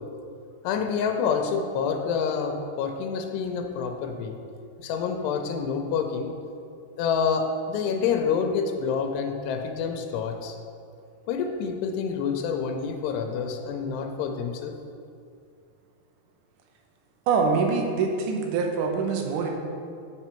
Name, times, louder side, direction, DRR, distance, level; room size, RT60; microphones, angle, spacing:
voice 1, 0.6-4.4 4.8-6.3 7.0-10.6 11.3-14.7, left 6 dB, 90° left, 4 dB, 2.8 m, -27 dB
voice 2, 17.3-19.5, right 5 dB, 75° right, 2 dB, 2.0 m, -24 dB
8.0 x 7.1 x 4.4 m, 2.5 s
omnidirectional pair, 4.7 m